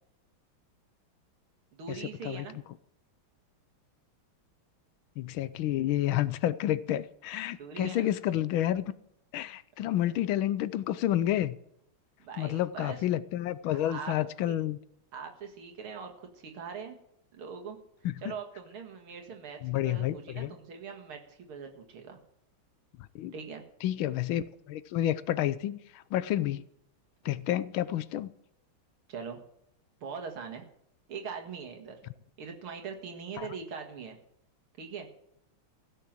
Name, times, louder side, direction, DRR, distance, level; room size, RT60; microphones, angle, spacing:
voice 1, 1.7-2.6 7.6-8.1 10.1-10.2 12.2-13.0 13.7-14.2 14.5-14.6 15.1-17.0 17.3-17.8 18.2-19.6 19.8-22.2 23.3-23.6 29.1-29.4 30.0-30.6 31.1-32.0 32.4-34.2 34.8-35.1, right 6 dB, 85° right, 3 dB, 2.7 m, -41 dB
voice 2, 5.2-8.9 9.3-11.6 12.4-14.8 18.0-18.1 19.6-20.5 23.1-23.3 23.8-25.8 26.1-26.6 27.2-28.3 33.4-33.5, left 12 dB, 75° left, 16 dB, 1.4 m, -29 dB
16.0 x 6.7 x 7.5 m, 0.74 s
omnidirectional pair, 2.3 m